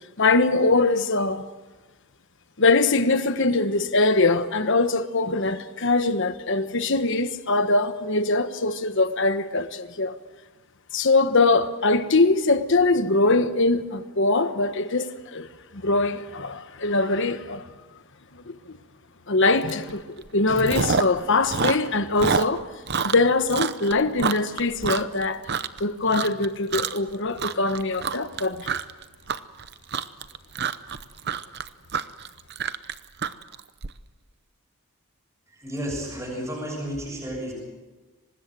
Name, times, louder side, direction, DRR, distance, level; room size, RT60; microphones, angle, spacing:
voice 1, 0.2-1.4 2.6-10.1 10.9-15.5 15.7-17.6 18.5-18.8 19.3-22.6 23.0-25.4 25.8-28.7, left 3 dB, 55° left, 1.2 m, -22 dB
Chewing mastication, 19.7-19.9 20.2-21.2 21.4-25.8 26.1-26.5 26.7-27.1 27.4-33.9, right 6 dB, 50° right, 0.8 m, -27 dB
voice 2, 35.5-37.5, equal, 15° right, 6.8 m, -32 dB
25.0 x 20.0 x 7.7 m
head